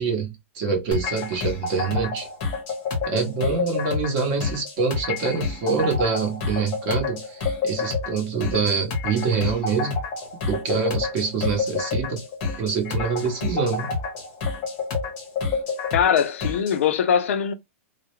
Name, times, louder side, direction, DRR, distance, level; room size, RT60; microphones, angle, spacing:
voice 1, 0.0-2.3 3.0-10.0 10.4-12.2 12.6-13.9, right 5 dB, 30° right, 0.8 m, -25 dB
sound 1, 0.9-16.8, left 4 dB, 30° left, 0.7 m, -29 dB
voice 2, 15.9-17.5, left 8 dB, 70° left, 0.5 m, -21 dB
2.3 x 2.0 x 2.9 m
supercardioid pair, 175°, 7 cm